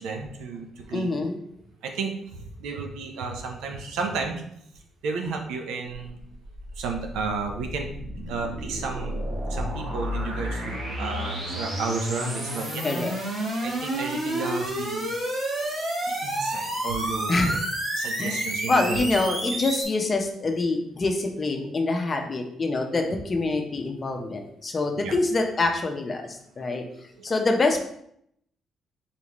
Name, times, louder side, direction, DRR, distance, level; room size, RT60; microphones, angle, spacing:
voice 1, 0.0-1.1 1.8-4.4 5.0-6.2 6.8-7.9 8.3-9.2 9.5-12.8 13.6-15.1 16.1-17.6 18.0-19.1 25.0-25.1 26.6-26.7 27.2-27.3, right 4 dB, 90° right, 3 dB, 0.7 m, -32 dB
voice 2, 0.9-1.4 12.8-13.1 17.3-17.6 18.2-26.8 27.2-27.9, left 3 dB, 35° left, 3 dB, 0.7 m, -25 dB
sound 1, 6.2-19.8, right 1 dB, 45° right, 1.7 m, -30 dB
4.0 x 3.8 x 3.0 m, 0.71 s
cardioid pair, 90°, 0 cm